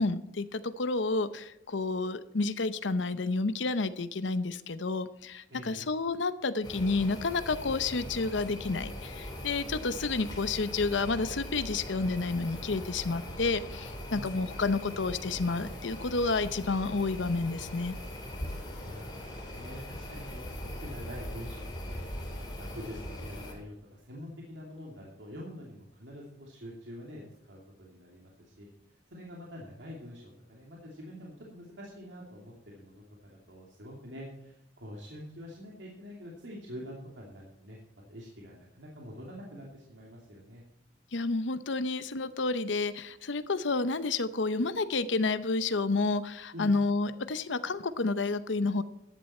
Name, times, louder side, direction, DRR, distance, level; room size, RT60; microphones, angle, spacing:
voice 1, 0.0-17.9 41.1-48.8, left 3 dB, 90° left, 13 dB, 0.8 m, -30 dB
voice 2, 5.5-5.8 14.1-14.3 18.5-22.0 22.4-28.7 29.1-33.0 33.3-37.8 38.1-40.6 46.5-46.7, equal, 75° right, -2 dB, 2.7 m, -46 dB
sound 1, 6.6-23.5, left 1 dB, 25° left, 3.6 m, -41 dB
14.0 x 11.0 x 4.3 m, 0.86 s
head